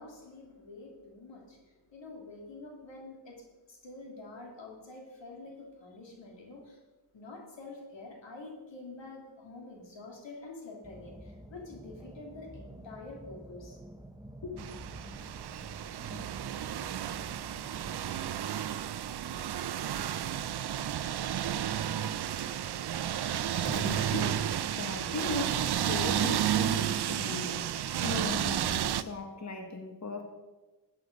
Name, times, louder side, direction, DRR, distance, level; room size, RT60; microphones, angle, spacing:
voice 1, 0.0-1.6 1.9-3.4 3.7-6.8 7.1-13.8 14.4-14.5, left 3 dB, 90° left, 0 dB, 2.9 m, -47 dB
sound 1, 10.8-18.2, right 1 dB, 10° right, 0.8 m, -49 dB
sound 2, 14.6-29.0, right 10 dB, 65° right, 0.6 m, -32 dB
voice 2, 23.5-24.4 24.8-27.6 27.9-30.2, left 3 dB, 40° left, 4 dB, 1.6 m, -38 dB
sound 3, 23.6-25.7, right 4 dB, 85° right, 1.4 m, -40 dB
13.0 x 8.7 x 5.2 m, 1.2 s
wide cardioid pair, 85°, 43 cm